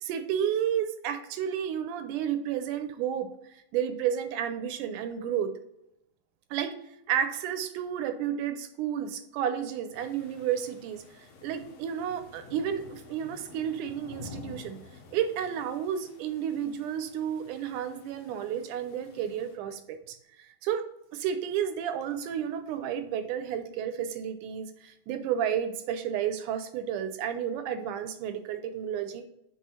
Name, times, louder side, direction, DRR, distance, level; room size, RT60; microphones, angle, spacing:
voice 1, 0.0-3.3 3.7-5.5 6.5-6.7 7.1-11.0 11.4-14.8 15.1-20.8 21.1-29.2, right 9 dB, 80° right, 9 dB, 2.0 m, -31 dB
sound 1, 9.9-19.6, left 4 dB, 70° left, 1.8 m, -50 dB
5.5 x 4.5 x 4.3 m, 0.83 s
omnidirectional pair, 3.7 m